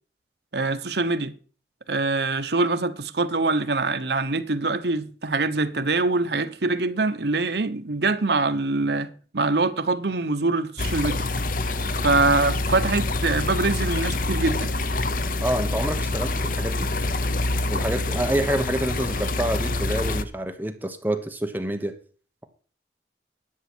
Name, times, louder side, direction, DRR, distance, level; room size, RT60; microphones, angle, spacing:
voice 1, 0.5-1.3 1.9-11.2 12.0-14.7, right 3 dB, 70° right, 1.0 m, -24 dB
sound 1, 10.8-20.2, left 2 dB, 50° left, 0.8 m, -26 dB
voice 2, 15.4-16.9 17.7-21.9, right 1 dB, 10° right, 1.1 m, -27 dB
11.5 x 7.4 x 6.2 m
head